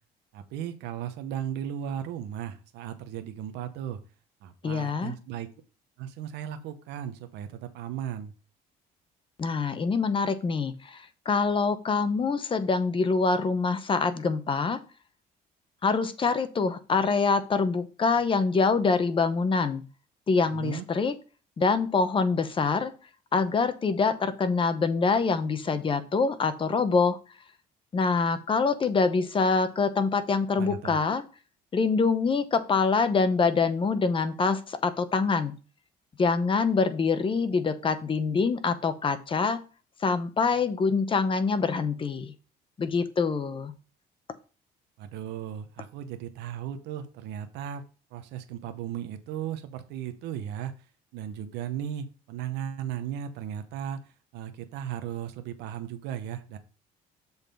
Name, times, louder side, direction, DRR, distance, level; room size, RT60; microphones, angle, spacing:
voice 1, 0.3-4.0 4.4-5.5 6.0-8.3 20.5-20.9 30.6-31.0 45.0-47.8 48.1-50.7 51.1-56.6, right 10 dB, 85° right, 9 dB, 0.9 m, -36 dB
voice 2, 4.6-5.1 9.4-14.8 15.8-19.8 20.3-21.1 21.6-22.9 23.3-27.2 27.9-31.2 31.7-35.5 36.2-39.6 40.0-42.3 42.8-43.7, left 4 dB, 30° left, 11 dB, 0.8 m, -25 dB
7.1 x 4.0 x 5.2 m, 0.36 s
cardioid pair, 110°, 17 cm